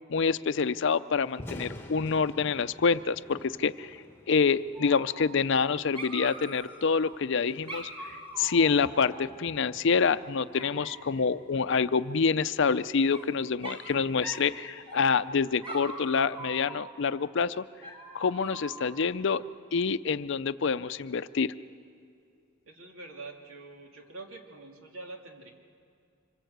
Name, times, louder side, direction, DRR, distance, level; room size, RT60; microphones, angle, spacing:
voice 1, 0.1-4.0 4.3-7.9 8.4-17.7 18.1-19.4 19.7-21.5, left 5 dB, 60° left, 14 dB, 0.5 m, -27 dB
Thunder, 1.2-15.4, left 1 dB, 10° left, 1.1 m, -51 dB
Dog, 4.7-5.7 5.9-7.2 7.7-9.8 10.5-11.2 12.6-13.3 13.6-13.9 14.2-14.5 14.9-15.3 15.6-17.1 17.8-19.0, right 2 dB, 25° right, 3.7 m, -43 dB
voice 2, 22.7-25.5, right 3 dB, 85° right, 2 dB, 2.5 m, -45 dB
26.0 x 22.0 x 8.0 m, 2.4 s
head